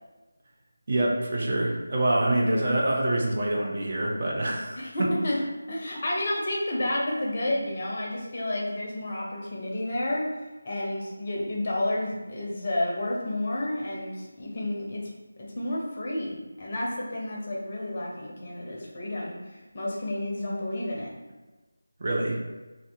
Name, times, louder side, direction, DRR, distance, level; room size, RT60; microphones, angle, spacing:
voice 1, 0.9-5.1 22.0-22.4, right 1 dB, 35° right, -2 dB, 0.5 m, -26 dB
voice 2, 4.7-5.4 5.7-10.3 10.6-15.1 15.4-19.4 19.7-21.1, left 1 dB, 30° left, -3 dB, 0.6 m, -30 dB
2.6 x 2.4 x 3.5 m, 1.2 s
figure-of-eight pair, 160°, 0 cm